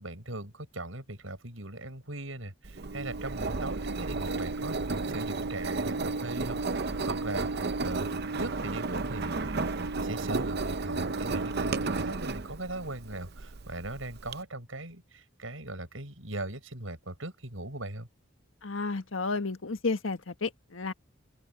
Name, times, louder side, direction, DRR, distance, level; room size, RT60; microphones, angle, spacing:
voice 1, 0.0-4.8 5.1-18.1, right 2 dB, 80° right, 7.5 m, -39 dB
Engine, 2.6-14.3, right 3 dB, 55° right, 0.7 m, -32 dB
voice 2, 18.6-20.9, left 3 dB, 80° left, 1.5 m, -32 dB
open air
head